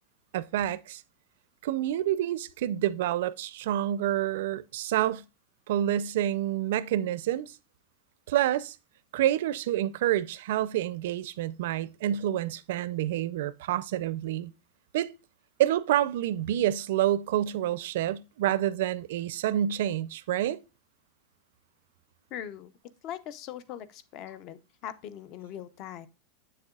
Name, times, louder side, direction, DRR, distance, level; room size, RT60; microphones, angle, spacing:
voice 1, 0.3-1.0 1.6-5.2 5.7-7.5 8.3-8.8 9.1-14.5 14.9-15.1 15.6-20.6, right 12 dB, 60° right, 0.5 m, -28 dB
voice 2, 22.3-22.7 23.0-26.1, left 10 dB, 30° left, 0.5 m, -41 dB
7.9 x 6.5 x 2.3 m
supercardioid pair, 175°, 0 cm